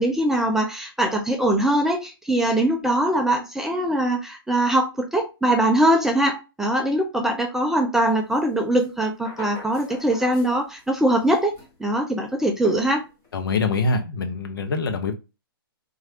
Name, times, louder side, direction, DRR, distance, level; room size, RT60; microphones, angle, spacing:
voice 1, 0.0-11.5 11.8-13.0, right 1 dB, 5° right, 2 dB, 0.3 m, -22 dB
sound 1, 8.3-8.4 8.7-10.8 11.1-11.7 12.6-13.4, left 2 dB, 30° left, 1.5 m, -39 dB
voice 2, 13.3-15.1, left 3 dB, 65° left, 6 dB, 0.7 m, -24 dB
3.0 x 2.5 x 2.8 m, 0.27 s
hypercardioid pair, 130°, 13 cm